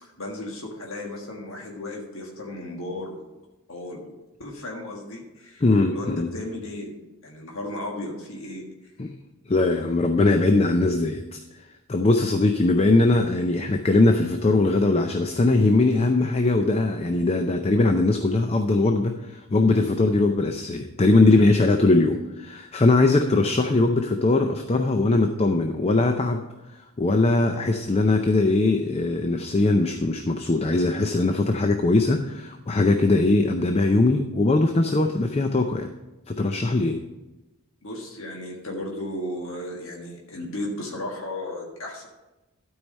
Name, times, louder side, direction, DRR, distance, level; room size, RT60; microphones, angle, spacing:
voice 1, 0.0-3.3 3.7-4.1 4.4-7.0 7.2-8.9 37.8-42.1, left 1 dB, 60° left, -1 dB, 1.6 m, -35 dB
voice 2, 5.6-6.3 9.0-9.1 9.5-11.4 11.9-26.4 27.0-35.9 36.3-37.0, left 2 dB, 30° left, 6 dB, 0.5 m, -21 dB
12.5 x 4.8 x 5.3 m, 1.0 s
head